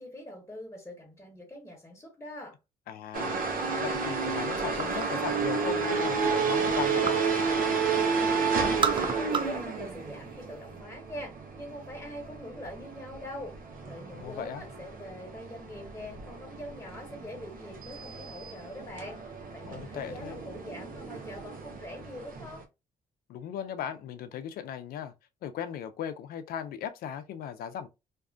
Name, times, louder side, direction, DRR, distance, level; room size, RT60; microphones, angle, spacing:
voice 1, 0.0-2.5 8.6-13.5 13.8-22.6, left 1 dB, 15° left, 1.2 m, -43 dB
voice 2, 2.9-3.4 3.8-7.2 14.1-14.6 19.6-20.4 23.3-25.1 25.4-27.9, left 9 dB, 75° left, 0.4 m, -37 dB
sound 1, 3.1-22.6, right 5 dB, 65° right, 0.8 m, -32 dB
sound 2, 4.8-5.3 5.7-7.3 7.7-8.3 8.6-9.7 10.0-10.8, right 6 dB, 35° right, 0.4 m, -33 dB
2.5 x 2.4 x 2.3 m
cardioid pair, 75°, 15 cm